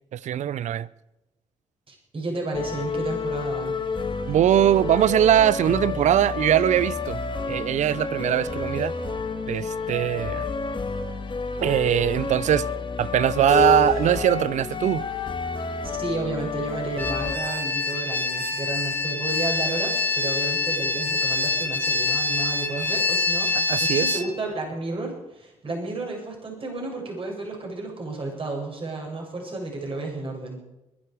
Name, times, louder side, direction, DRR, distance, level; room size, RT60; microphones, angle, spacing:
voice 1, 0.1-0.9 4.3-7.2 7.5-8.9 9.5-10.5 11.6-12.7 13.0-15.0 23.5-24.2, right 11 dB, 60° right, 0.7 m, -21 dB
voice 2, 1.9-3.8 16.0-30.6, right 3 dB, 40° right, 7.9 m, -32 dB
sound 1, 2.5-17.4, left 4 dB, 35° left, 2.4 m, -30 dB
Keyboard (musical), 13.5-16.4, left 6 dB, 65° left, 4.7 m, -30 dB
sound 2, 17.0-24.2, left 3 dB, 15° left, 3.3 m, -25 dB
22.0 x 11.5 x 5.0 m
hypercardioid pair, 55°, 14 cm